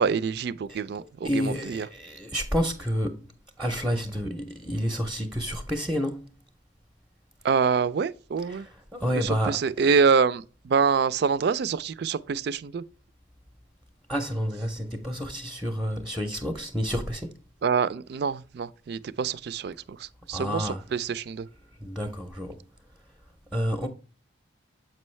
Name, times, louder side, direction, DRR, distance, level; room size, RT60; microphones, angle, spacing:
voice 1, 0.0-1.9 7.4-8.7 9.2-12.8 17.6-21.5, right 5 dB, 55° right, 0.3 m, -26 dB
voice 2, 1.2-3.3 3.6-6.3 8.5-9.9 14.1-17.3 20.3-20.8 21.8-22.6 23.5-23.9, equal, ahead, 0.5 m, -29 dB
7.5 x 5.4 x 3.1 m
head